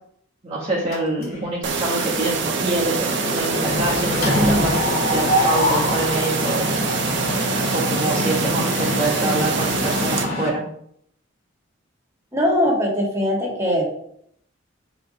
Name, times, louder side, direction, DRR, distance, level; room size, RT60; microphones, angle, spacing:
voice 1, 0.4-4.8 5.1-6.7 7.7-10.6, right 2 dB, 30° right, -6 dB, 1.3 m, -25 dB
Mechanisms, 0.9-1.5 1.8-2.1 2.3-10.5, left 1 dB, 50° left, 2.1 m, -25 dB
sound 1, 1.6-10.2, right 5 dB, 65° right, 1.1 m, -25 dB
voice 2, 12.3-13.8, left 1 dB, 15° right, -4 dB, 2.3 m, -20 dB
5.0 x 4.9 x 5.3 m, 0.68 s
head